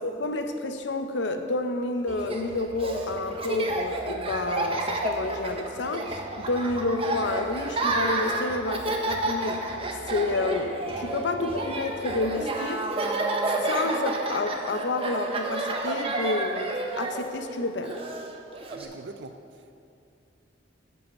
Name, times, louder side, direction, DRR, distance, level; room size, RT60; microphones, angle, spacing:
voice 1, 0.0-9.6 10.1-12.9 13.6-18.0, left 2 dB, 65° left, 7 dB, 0.6 m, -29 dB
Laughter, 2.1-18.9, right 2 dB, 30° right, 0.7 m, -30 dB
voice 2, 11.3-11.6 18.7-19.7, right 3 dB, 65° right, 7 dB, 0.4 m, -42 dB
6.8 x 5.5 x 7.3 m, 2.5 s
head